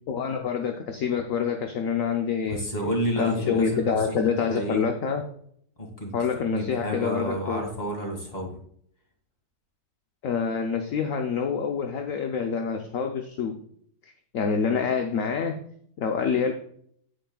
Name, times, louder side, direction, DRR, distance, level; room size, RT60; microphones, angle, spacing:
voice 1, 0.1-2.7 3.2-5.2 6.1-7.6 10.2-13.6 14.0-15.6 16.0-16.5, left 6 dB, 60° left, 4 dB, 1.0 m, -27 dB
voice 2, 2.4-4.2 4.5-4.8 5.8-6.1 6.5-8.5, equal, 25° left, 1 dB, 2.1 m, -30 dB
9.2 x 9.0 x 2.3 m, 0.64 s
omnidirectional pair, 1.9 m